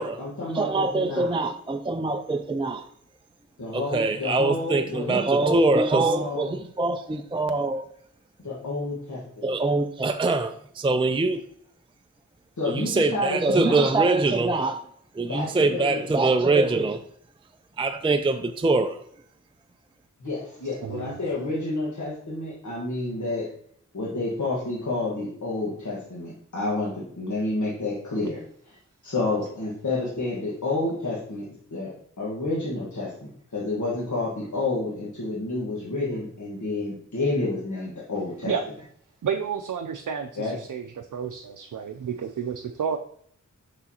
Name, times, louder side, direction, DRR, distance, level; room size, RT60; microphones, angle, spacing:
voice 1, 0.0-1.3 3.6-6.5 8.4-9.5 12.6-13.9 15.3-16.0 20.2-23.5 23.9-28.4 28.7-28.8 29.0-31.5 31.7-31.9 32.2-38.5 40.4-40.5, left 2 dB, 70° left, 1.6 m, -29 dB
voice 2, 0.5-2.8 3.7-7.9 9.4-11.4 12.6-14.8 15.2-17.0 17.8-19.0, right 3 dB, 15° right, 0.4 m, -23 dB
voice 3, 20.8-21.2 38.4-38.6 39.2-43.0, right 7 dB, 85° right, 0.5 m, -31 dB
6.2 x 5.6 x 2.9 m
wide cardioid pair, 85°, 31 cm